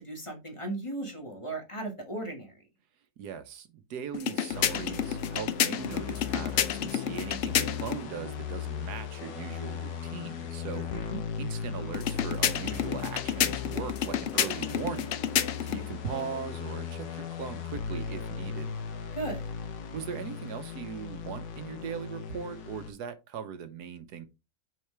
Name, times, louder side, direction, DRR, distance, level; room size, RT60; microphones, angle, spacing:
voice 1, 0.0-2.5 10.7-11.2 19.1-19.5, right 2 dB, 20° left, 1.6 m, -36 dB
voice 2, 3.2-10.8 11.4-15.2 15.6-18.7 19.9-24.3, right 7 dB, 90° right, 1.5 m, -39 dB
sound 1, 4.1-8.0 11.9-15.8, left 9 dB, 60° left, 0.8 m, -30 dB
sound 2, 4.5-22.9, left 7 dB, 80° left, 1.5 m, -37 dB
6.4 x 4.8 x 3.3 m
omnidirectional pair, 1.7 m